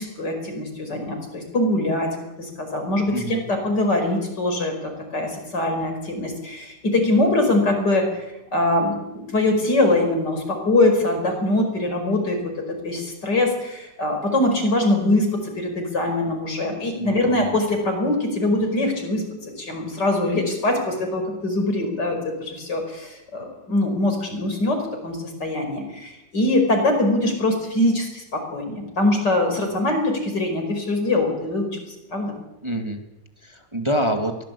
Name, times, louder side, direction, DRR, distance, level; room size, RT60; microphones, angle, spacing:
voice 1, 0.0-2.1 2.4-8.1 8.5-12.5 12.8-31.8 32.1-32.3, left 2 dB, 65° left, 5 dB, 5.9 m, -23 dB
voice 2, 3.1-3.4 17.0-17.5 32.6-33.0 33.4-34.4, right 1 dB, 15° right, 4 dB, 2.2 m, -26 dB
23.0 x 18.5 x 8.5 m, 0.97 s
omnidirectional pair, 2.0 m